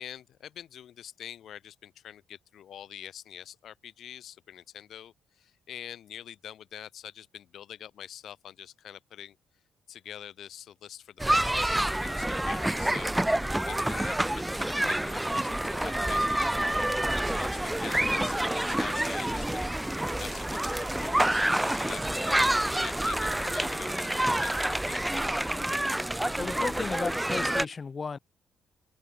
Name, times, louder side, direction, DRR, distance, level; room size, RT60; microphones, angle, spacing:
voice 1, 0.0-9.4 9.9-13.4 13.6-19.7 20.2-22.4 22.8-25.0, left 10 dB, 70° left, 3.3 m, -45 dB
sound 1, 11.2-27.7, right 1 dB, 10° right, 0.9 m, -28 dB
voice 2, 26.4-28.2, left 5 dB, 35° left, 2.7 m, -34 dB
cardioid pair, 90°, 0 cm